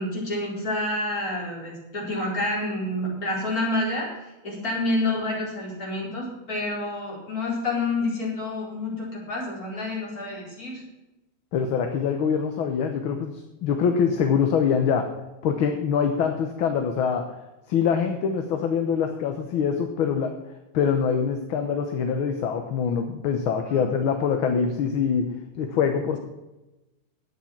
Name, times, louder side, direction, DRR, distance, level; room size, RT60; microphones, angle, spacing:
voice 1, 0.0-10.8 23.6-23.9, left 2 dB, 40° left, -4 dB, 4.9 m, -28 dB
voice 2, 11.5-15.1 15.4-17.2 17.7-20.3 20.7-25.3 25.6-26.2, left 6 dB, 70° left, 5 dB, 1.9 m, -24 dB
11.5 x 8.9 x 6.0 m, 1.0 s
omnidirectional pair, 2.3 m